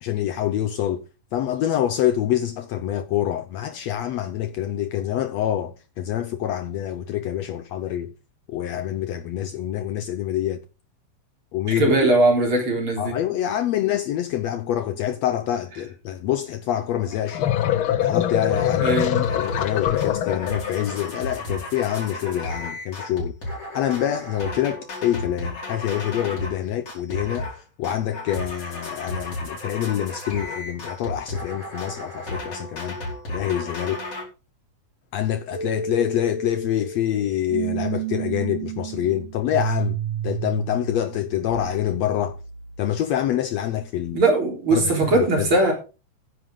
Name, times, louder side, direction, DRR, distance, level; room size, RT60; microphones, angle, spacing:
voice 1, 0.0-1.0 1.3-8.1 8.5-10.6 11.5-11.9 13.0-17.5 18.0-18.9 19.3-23.3 23.7-27.5 27.8-33.0 33.3-34.0 35.1-42.4 42.8-44.2 44.7-44.9 45.2-45.5, left 11 dB, 70° left, 1.8 m, -26 dB
voice 2, 11.8-13.1 18.8-19.3 44.1-45.7, right 2 dB, 40° right, 4.6 m, -20 dB
sound 1, 17.1-21.0, left 11 dB, 85° left, 1.1 m, -23 dB
sound 2, 18.5-18.7 19.0-19.7 20.0-26.6 26.9-27.6 27.8-34.2, left 1 dB, 45° left, 6.0 m, -33 dB
sound 3, 35.5-43.4, right 7 dB, 80° right, 2.9 m, -31 dB
15.0 x 10.5 x 3.8 m
omnidirectional pair, 3.5 m